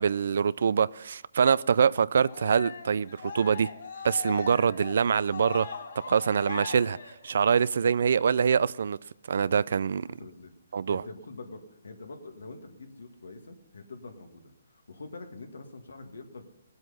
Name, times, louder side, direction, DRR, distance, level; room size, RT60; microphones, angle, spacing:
voice 1, 0.0-3.7 4.0-5.7 6.1-7.0 7.2-9.0 9.3-10.1 10.7-11.0, right 6 dB, 65° right, 0.4 m, -24 dB
Cheering, 2.2-7.7, left 5 dB, 65° left, 3.8 m, -40 dB
voice 2, 10.1-16.5, left 3 dB, 90° left, 1.9 m, -45 dB
17.0 x 7.9 x 5.5 m
hypercardioid pair, 160°, 0 cm